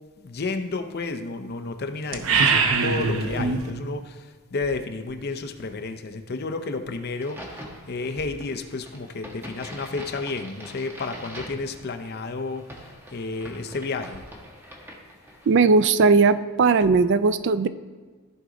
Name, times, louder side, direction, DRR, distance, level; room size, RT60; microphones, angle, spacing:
voice 1, 0.2-4.2 4.5-7.4 7.9-12.6 13.1-14.2, left 3 dB, 50° left, 7 dB, 0.6 m, -31 dB
sound 1, 2.1-3.7, right 4 dB, 75° right, 0.8 m, -22 dB
Crack, 7.1-15.7, equal, 10° right, 1.3 m, -43 dB
voice 2, 15.5-17.7, right 4 dB, 55° right, 14 dB, 0.4 m, -18 dB
14.5 x 5.0 x 3.9 m, 1.5 s
head